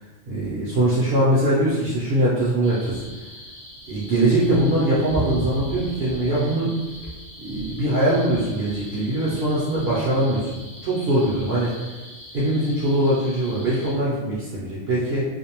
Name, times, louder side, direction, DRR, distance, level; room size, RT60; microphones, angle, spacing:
voice 1, 0.3-3.0 3.9-6.7 7.4-10.5 10.8-11.7 12.3-15.3, right 1 dB, 65° right, -8 dB, 0.8 m, -22 dB
sound 1, 2.6-13.9, equal, 10° left, 0.5 m, -38 dB
2.5 x 2.0 x 2.9 m, 1.2 s
omnidirectional pair, 1.3 m